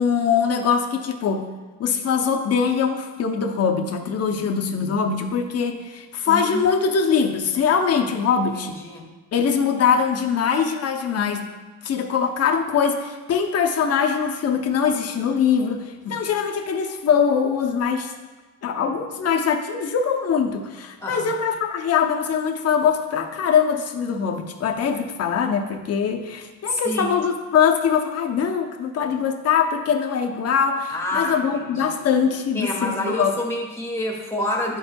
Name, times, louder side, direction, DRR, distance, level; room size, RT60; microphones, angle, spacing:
voice 1, 0.0-1.5 1.8-8.8 9.3-11.4 11.8-18.1 18.6-33.3, left 6 dB, 40° left, 4 dB, 0.7 m, -22 dB
voice 2, 6.2-6.6 8.5-9.1 21.0-21.3 26.7-27.1 30.9-32.0 32.5-34.8, left 1 dB, 5° left, -1 dB, 1.2 m, -28 dB
11.0 x 4.3 x 2.3 m, 1.3 s
cardioid pair, 130°, 37 cm